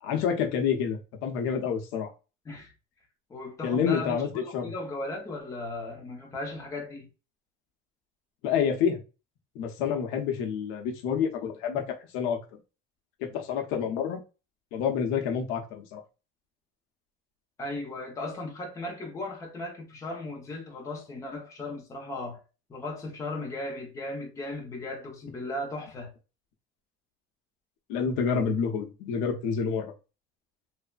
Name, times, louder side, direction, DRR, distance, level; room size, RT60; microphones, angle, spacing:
voice 1, 0.0-2.1 3.6-4.7 8.4-9.0 9.5-12.4 13.2-14.2 14.7-16.0 27.9-29.9, left 7 dB, 75° left, 0.7 m, -28 dB
voice 2, 3.3-7.1 17.6-22.4 22.7-26.1, left 2 dB, 15° left, 0.6 m, -36 dB
3.2 x 2.0 x 2.3 m
cardioid pair, 170°, 21 cm